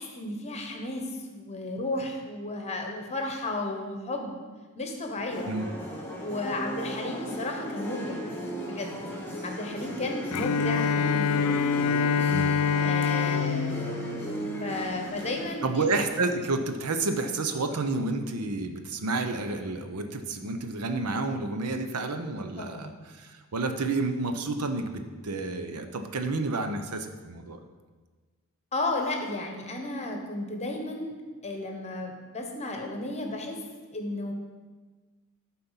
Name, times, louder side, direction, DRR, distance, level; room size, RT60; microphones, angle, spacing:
voice 1, 0.0-4.4 4.7-5.5 6.2-8.3 8.6-9.0 9.4-11.4 12.8-14.0 14.6-15.9 22.6-23.0 28.7-31.1 31.4-33.6 33.9-34.3, left 2 dB, 30° left, 3 dB, 1.1 m, -33 dB
sound 1, 5.3-15.7, equal, 10° left, 1.4 m, -36 dB
Bowed string instrument, 10.3-15.3, left 6 dB, 85° left, 0.4 m, -26 dB
voice 2, 15.6-27.6, right 3 dB, 85° right, 6 dB, 0.8 m, -30 dB
11.5 x 4.3 x 5.8 m, 1.4 s
head